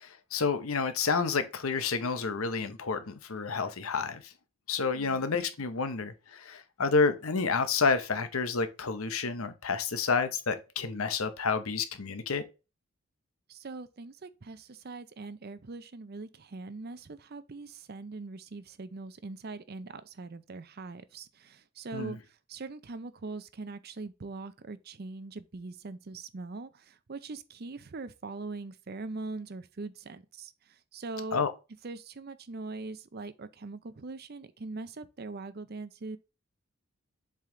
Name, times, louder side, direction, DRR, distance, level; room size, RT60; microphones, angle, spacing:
voice 1, 0.0-4.3 4.7-12.4 21.9-22.2 31.3-31.5, left 4 dB, 80° left, 0.8 m, -29 dB
voice 2, 4.9-5.2 13.5-31.4 31.8-36.2, right 3 dB, 50° right, 0.6 m, -42 dB
7.5 x 3.5 x 3.8 m
head